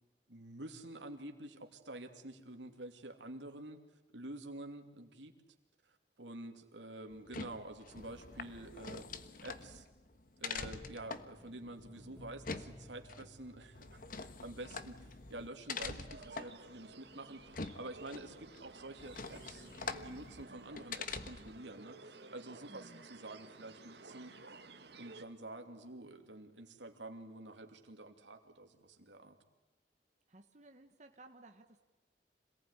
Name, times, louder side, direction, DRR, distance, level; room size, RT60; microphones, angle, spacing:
voice 1, 0.3-3.8 4.1-5.3 5.8-9.0 9.4-9.8 10.4-24.3 25.0-29.4, right 2 dB, 90° right, 5 dB, 2.8 m, -49 dB
sound 1, 7.1-21.6, left 4 dB, 50° left, 1.3 m, -46 dB
sound 2, 10.8-15.3 15.5-15.6, equal, 10° left, 1.7 m, -58 dB
sound 3, 16.1-25.2, right 3 dB, 65° right, 1.9 m, -54 dB
voice 2, 22.7-23.0 30.3-31.8, right 2 dB, 40° right, 5 dB, 1.4 m, -58 dB
27.0 x 18.5 x 9.9 m, 1.2 s
head